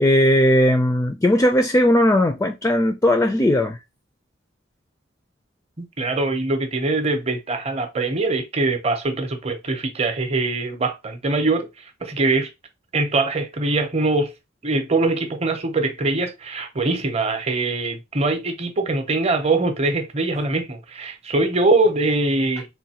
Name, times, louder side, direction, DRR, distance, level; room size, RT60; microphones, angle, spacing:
voice 1, 0.0-3.8, left 1 dB, 15° left, 0.3 m, -17 dB
voice 2, 5.8-11.7 12.0-12.5 12.9-14.3 14.6-22.7, right 2 dB, 35° right, 0.7 m, -22 dB
3.7 x 2.6 x 2.8 m
head